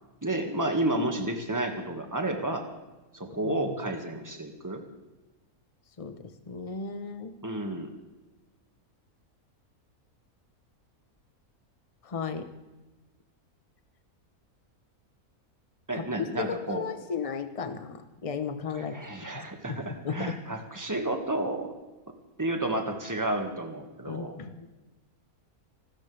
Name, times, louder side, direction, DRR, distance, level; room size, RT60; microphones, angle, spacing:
voice 1, 0.2-2.7 3.1-4.8 7.4-7.9 15.9-16.9 18.7-21.7 22.4-24.4, right 1 dB, 10° right, 3 dB, 1.9 m, -31 dB
voice 2, 3.3-3.7 6.0-7.4 12.0-12.5 15.9-16.1 16.4-19.0 19.3-19.8 20.0-20.4 24.1-24.7, left 6 dB, 25° left, 8 dB, 1.0 m, -35 dB
26.5 x 13.5 x 3.5 m, 1.1 s
omnidirectional pair, 1.6 m